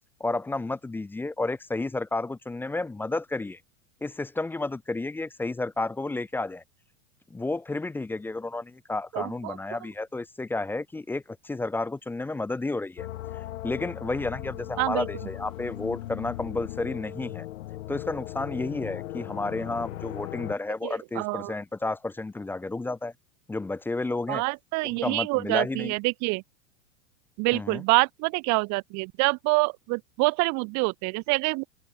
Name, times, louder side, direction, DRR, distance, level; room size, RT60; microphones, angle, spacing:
voice 1, 0.2-3.6 4.0-6.6 7.3-13.1 13.6-17.5 17.9-23.1 23.5-24.4 24.8-25.9 27.5-27.8, left 2 dB, 5° left, 0.5 m, -31 dB
voice 2, 9.1-9.6 14.8-15.1 20.8-21.5 24.3-26.4 27.4-31.7, right 28 dB, 45° right, 1.1 m, -26 dB
sound 1, 13.0-20.6, left 15 dB, 70° left, 3.6 m, -37 dB
hypercardioid pair, 105°, 40 cm